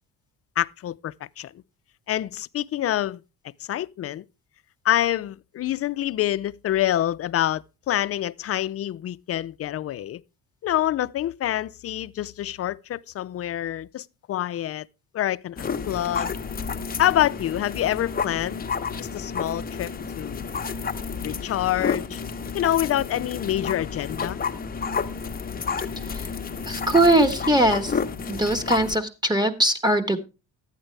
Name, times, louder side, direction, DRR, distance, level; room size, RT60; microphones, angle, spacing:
voice 1, 0.6-1.5 2.1-3.2 3.7-4.2 4.8-10.2 10.6-14.9 15.1-16.3 17.0-18.7 19.0-20.5 21.2-22.2 22.5-24.4, left 12 dB, 40° left, 0.4 m, -26 dB
sound 1, 15.6-29.0, left 5 dB, 20° left, 0.8 m, -31 dB
voice 2, 26.7-28.0 28.3-30.2, right 1 dB, 10° right, 1.2 m, -21 dB
11.5 x 8.9 x 3.2 m
cardioid pair, 85°, 40 cm